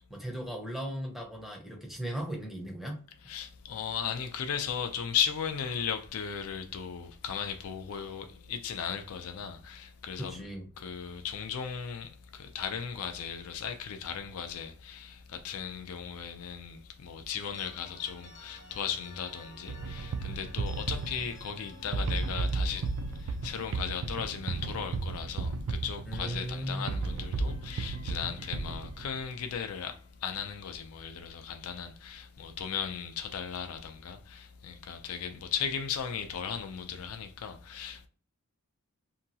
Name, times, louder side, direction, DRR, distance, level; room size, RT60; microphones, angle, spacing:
voice 1, 0.1-3.0 10.2-10.7 26.0-26.9, right 1 dB, ahead, 0.6 m, -37 dB
voice 2, 3.2-10.4 10.8-38.1, left 7 dB, 80° left, 0.4 m, -36 dB
sound 1, 17.5-26.3 26.5-30.7, left 2 dB, 55° left, 0.9 m, -54 dB
sound 2, 19.7-29.2, right 3 dB, 60° right, 0.3 m, -34 dB
2.8 x 2.3 x 2.7 m
head